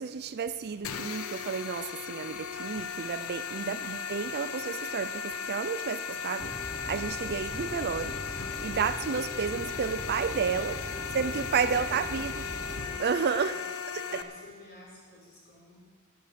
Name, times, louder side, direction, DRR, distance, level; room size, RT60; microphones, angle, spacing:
voice 1, 0.0-10.8 11.1-12.3 13.0-13.6 13.9-14.2, right 6 dB, 45° right, 0.5 m, -31 dB
sound 1, 0.8-14.2, left 6 dB, 70° left, 0.8 m, -37 dB
sound 2, 6.4-13.0, left 1 dB, 20° left, 0.6 m, -40 dB
voice 2, 11.3-12.4 13.3-13.6 14.0-15.8, left 1 dB, 45° left, 5.1 m, -53 dB
12.0 x 11.0 x 6.8 m
head